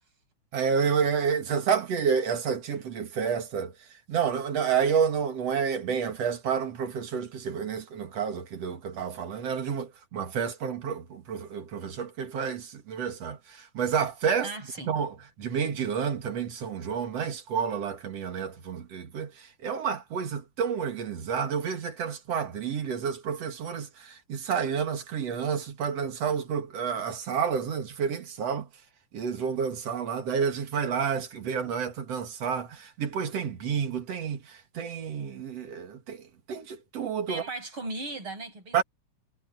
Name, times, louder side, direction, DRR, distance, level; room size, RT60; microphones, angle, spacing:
voice 1, 0.5-3.7 4.1-14.5 14.9-15.1 15.4-28.7 29.1-36.2 36.5-37.4 38.7-38.8, right 7 dB, 55° right, 2.8 m, -30 dB
voice 2, 14.4-14.9 37.3-38.8, right 2 dB, 40° right, 7.0 m, -37 dB
omnidirectional pair, 3.7 m